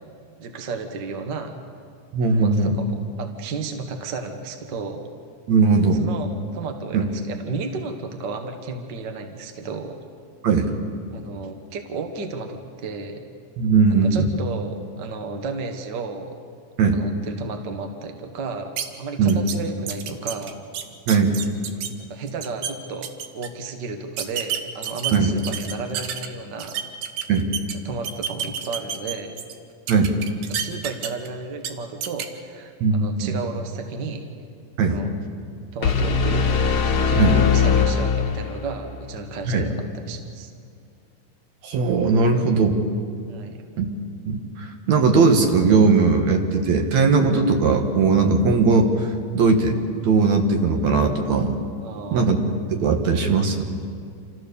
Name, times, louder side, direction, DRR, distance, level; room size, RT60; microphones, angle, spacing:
voice 1, 0.4-1.5 2.4-2.5 2.8-2.9 3.2-5.0 5.9-10.0 11.1-13.2 14.0-16.4 16.9-18.7 19.0-20.6 22.0-26.8 27.8-29.3 30.5-34.3 34.8-35.1 35.7-36.5 36.9-40.5 43.3-43.6 51.8-52.3, right 4 dB, 50° right, 5 dB, 1.4 m, -33 dB
voice 2, 2.1-2.8 5.5-6.0 6.9-7.1 10.4-10.7 13.6-14.2 16.8-17.0 19.2-19.4 21.1-21.4 25.1-25.3 27.3-27.5 29.9-30.1 32.8-33.3 34.8-35.0 37.2-37.4 39.5-39.7 41.6-42.8 43.8-43.9 44.3-48.9 49.3-49.8 50.0-51.6 52.1-53.6, right 4 dB, 65° right, 4 dB, 2.5 m, -19 dB
sound 1, 18.8-18.9 19.3-19.6 19.9-21.9 22.3-22.7 23.0-23.5 24.2-26.3 26.6-27.7 28.0-29.5 29.9-31.3 31.6-31.7 32.0-32.3, right 8 dB, 85° right, 2.7 m, -29 dB
sound 2, 35.8-38.8, left 6 dB, 50° left, 1.9 m, -20 dB
28.0 x 14.5 x 6.9 m, 2.2 s
omnidirectional pair, 3.7 m